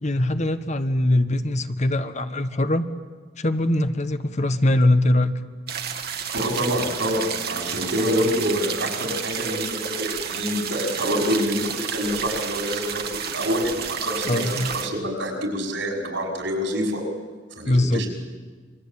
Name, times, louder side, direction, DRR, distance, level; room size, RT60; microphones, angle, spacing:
voice 1, 0.0-2.8 3.4-5.3 14.2-14.7 17.6-18.1, left 1 dB, 40° left, 10 dB, 1.2 m, -22 dB
sound 1, 5.7-14.9, right 7 dB, 55° right, 1.8 m, -31 dB
voice 2, 6.3-17.0 17.6-18.1, equal, 85° right, 1 dB, 5.7 m, -26 dB
27.0 x 23.0 x 8.6 m, 1.4 s
head